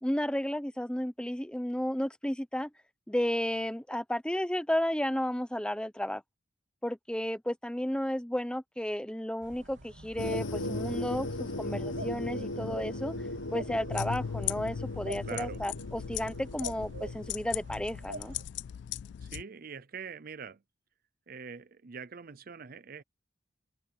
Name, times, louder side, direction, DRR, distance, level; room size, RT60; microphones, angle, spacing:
voice 1, 0.0-2.7 3.1-6.2 6.8-13.1 13.5-18.3, equal, 5° left, 0.9 m, -33 dB
sound 1, 9.4-18.4, right 2 dB, 70° right, 2.9 m, -47 dB
sound 2, 10.2-17.3, left 1 dB, 85° left, 1.1 m, -37 dB
sound 3, 13.9-19.4, left 10 dB, 65° left, 0.3 m, -38 dB
voice 2, 15.2-15.6 19.2-20.6 21.3-23.0, right 6 dB, 50° right, 0.6 m, -43 dB
head